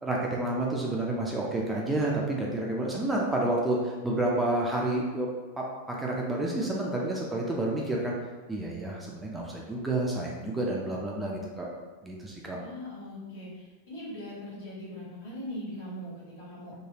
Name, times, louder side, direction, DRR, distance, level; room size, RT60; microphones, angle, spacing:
voice 1, 0.0-5.3 5.6-8.1 8.5-11.7 12.0-12.6, right 2 dB, 10° right, -3 dB, 0.4 m, -29 dB
voice 2, 12.6-16.7, left 1 dB, 55° left, -8 dB, 1.4 m, -40 dB
3.1 x 2.2 x 2.8 m, 1.3 s
figure-of-eight pair, 90°, 0 cm